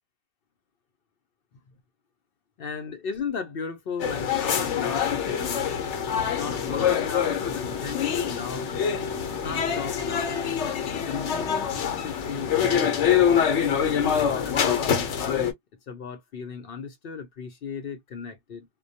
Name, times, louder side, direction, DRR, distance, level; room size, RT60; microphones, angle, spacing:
voice 1, 2.6-5.7 6.3-8.7 9.4-10.3 11.0-13.3 14.0-15.5 15.9-18.7, left 5 dB, 60° left, 0.7 m, -36 dB
sound 1, 4.0-15.5, left 8 dB, 90° left, 1.0 m, -25 dB
2.2 x 2.1 x 2.6 m
omnidirectional pair, 1.2 m